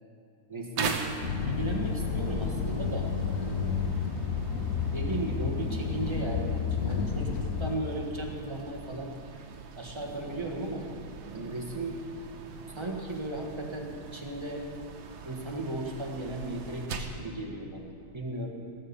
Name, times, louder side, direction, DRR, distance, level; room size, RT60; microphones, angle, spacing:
voice 1, 0.5-1.0 1.4-3.9 4.9-9.1 9.7-10.9 11.3-12.0 12.7-14.6 15.2-18.5, right 1 dB, 15° right, 0 dB, 1.3 m, -36 dB
sound 1, 0.8-17.2, right 5 dB, 75° right, 1.7 m, -42 dB
sound 2, 1.2-7.8, left 6 dB, 60° left, 0.8 m, -31 dB
17.5 x 7.8 x 7.0 m, 2.5 s
omnidirectional pair, 2.2 m